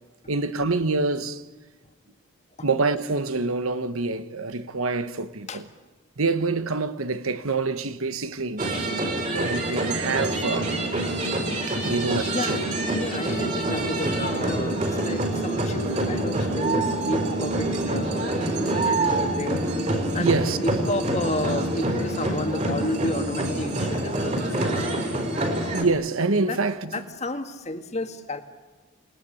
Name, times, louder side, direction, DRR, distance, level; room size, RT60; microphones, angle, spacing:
voice 1, 0.3-1.4 2.6-5.7 6.2-8.7 9.3-10.7 11.7-12.6 20.2-20.6 25.7-27.0, right 3 dB, 90° right, 1.2 m, -26 dB
sound 1, 8.6-25.8, right 1 dB, 35° right, 4.0 m, -26 dB
voice 2, 12.2-19.6 20.1-24.9 26.4-26.6 26.9-28.4, left 1 dB, 35° left, 1.8 m, -32 dB
28.5 x 19.5 x 10.0 m
head